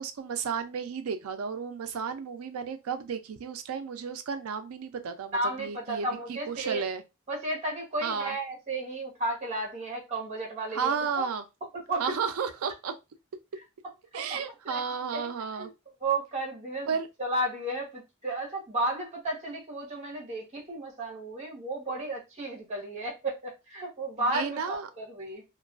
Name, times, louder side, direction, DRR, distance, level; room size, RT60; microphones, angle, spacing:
voice 1, 0.0-7.0 8.0-8.3 10.7-11.4 12.0-12.9 14.1-15.7 16.9-17.1 24.3-24.9, right 6 dB, 90° right, 0.4 m, -33 dB
voice 2, 5.3-6.8 7.3-11.3 11.7-12.1 14.1-14.8 15.1-15.7 16.0-16.9 17.2-25.4, right 2 dB, 35° right, 0.9 m, -33 dB
2.3 x 2.2 x 2.3 m
head